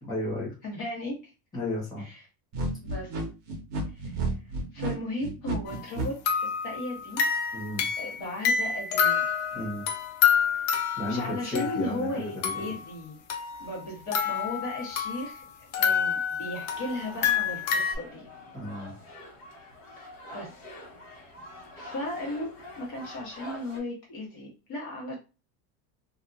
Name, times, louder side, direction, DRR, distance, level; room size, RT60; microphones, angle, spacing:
voice 1, 0.0-0.5 1.5-2.0 7.5-7.9 9.5-9.8 11.0-12.7 18.5-18.9, left 1 dB, 10° left, -8 dB, 1.2 m, -33 dB
voice 2, 0.6-1.2 2.0-2.2 2.8-3.2 3.9-4.2 4.7-7.2 8.0-9.2 10.8-13.2 13.6-15.4 15.8-18.3 20.0-20.6 21.2-21.3 21.8-25.1, left 1 dB, 50° left, -2 dB, 1.3 m, -36 dB
sound 1, 2.5-6.1, right 2 dB, 40° right, 0.7 m, -31 dB
sound 2, 5.7-5.8 6.3-12.1 12.4-12.8 13.3-15.4 15.7-17.9, left 7 dB, 85° left, 0.8 m, -28 dB
sound 3, 16.6-23.8, left 1 dB, 70° left, 1.4 m, -46 dB
2.7 x 2.4 x 2.5 m, 0.31 s
cardioid pair, 170°, 42 cm